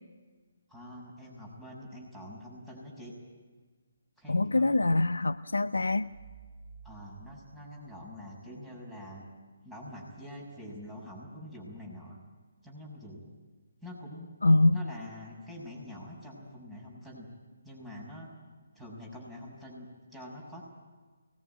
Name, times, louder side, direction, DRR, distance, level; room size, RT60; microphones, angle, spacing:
voice 1, 0.7-3.1 4.2-4.7 6.8-9.2 9.6-12.2 12.6-13.2 13.8-14.3 14.7-17.3 17.6-18.3 18.7-20.7, left 1 dB, 5° right, -3 dB, 6.6 m, -45 dB
voice 2, 4.3-6.1 14.4-14.8, left 2 dB, 75° left, 12 dB, 0.7 m, -24 dB
sound 1, 5.8-8.5, right 4 dB, 30° right, 4.9 m, -53 dB
23.5 x 19.5 x 9.3 m, 1.3 s
figure-of-eight pair, 140°, 0 cm